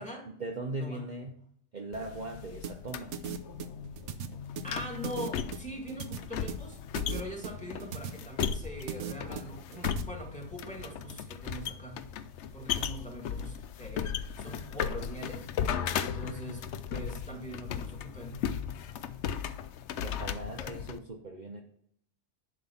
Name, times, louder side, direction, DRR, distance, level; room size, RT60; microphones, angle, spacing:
voice 1, 0.0-1.3 1.7-3.2 20.0-21.6, right 2 dB, 45° right, 2 dB, 0.9 m, -39 dB
sound 1, 1.9-21.0, left 8 dB, 75° left, 0.9 m, -36 dB
sound 2, 2.6-10.0, right 7 dB, 80° right, 1.1 m, -39 dB
voice 2, 4.6-6.8 7.1-12.0 12.5-15.5 15.9-18.5 20.6-20.7, equal, 5° left, 1 dB, 1.9 m, -42 dB
11.0 x 3.8 x 7.0 m, 0.69 s
omnidirectional pair, 1.2 m